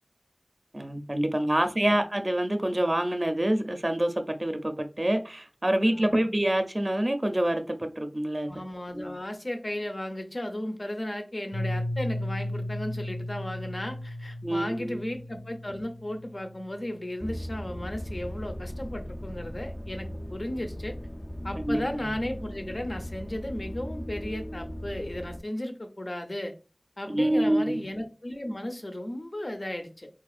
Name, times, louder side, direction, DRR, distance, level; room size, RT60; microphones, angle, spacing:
voice 1, 0.7-8.5 8.9-9.0 14.4-15.0 21.6-21.8 27.1-27.8, right 1 dB, 40° right, 0.5 m, -26 dB
voice 2, 1.6-2.0 5.9-6.3 8.5-21.0 21.4-26.5 27.0-30.1, left 1 dB, 60° left, 0.7 m, -35 dB
Piano, 11.5-17.1, left 1 dB, 80° left, 1.2 m, -35 dB
sound 1, 17.2-25.4, equal, 20° left, 0.3 m, -38 dB
3.9 x 2.4 x 2.4 m
wide cardioid pair, 40°, 0 cm